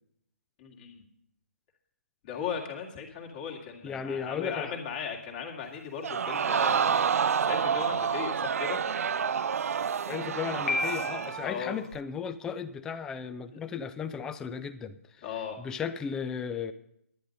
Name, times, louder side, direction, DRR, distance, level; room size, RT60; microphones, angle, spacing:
voice 1, 0.6-1.0 2.2-7.1 7.4-8.8 11.4-11.8 13.5-13.6 15.2-15.6, left 7 dB, 35° left, 1 dB, 2.0 m, -37 dB
voice 2, 3.8-4.8 10.1-15.2 15.6-16.7, left 7 dB, 10° left, 11 dB, 0.3 m, -35 dB
Crowd, 6.0-11.5 11.9-12.0, right 7 dB, 70° right, 0.4 m, -28 dB
Piano, 10.7-11.6, left 4 dB, 60° left, 1.2 m, -32 dB
11.0 x 9.8 x 5.2 m, 0.75 s
hypercardioid pair, 155°, 8 cm